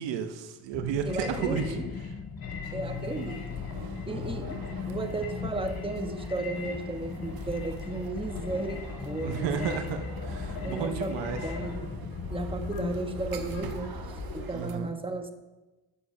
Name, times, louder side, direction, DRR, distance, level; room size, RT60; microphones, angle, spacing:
voice 1, 0.0-1.8 9.2-11.4 14.5-14.9, right 7 dB, 80° right, 7 dB, 0.9 m, -32 dB
sound 1, 0.7-13.2, left 6 dB, 30° left, 0.8 m, -39 dB
sound 2, 1.0-14.5, left 3 dB, 55° left, 2.2 m, -41 dB
voice 2, 1.0-1.8 2.7-3.4 4.1-9.8 10.6-11.8 12.3-13.9 14.3-15.3, right 2 dB, 10° right, 5 dB, 1.4 m, -34 dB
sound 3, 2.8-14.8, right 5 dB, 55° right, 1.2 m, -46 dB
8.4 x 7.5 x 5.8 m, 1.1 s
supercardioid pair, 60°, 42 cm